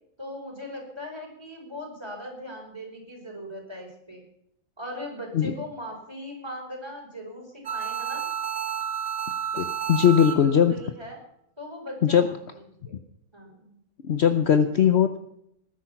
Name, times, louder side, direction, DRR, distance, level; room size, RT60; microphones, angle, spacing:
voice 1, 0.2-4.2 4.8-8.2 10.2-11.2 11.6-13.0 13.3-13.8, equal, 15° right, 0 dB, 4.9 m, -39 dB
sound 1, 7.7-10.7, right 8 dB, 75° right, 2.2 m, -31 dB
voice 2, 9.5-10.7 12.0-12.3 14.0-15.2, left 8 dB, 55° left, 9 dB, 1.0 m, -20 dB
19.5 x 10.5 x 5.8 m, 0.75 s
omnidirectional pair, 1.5 m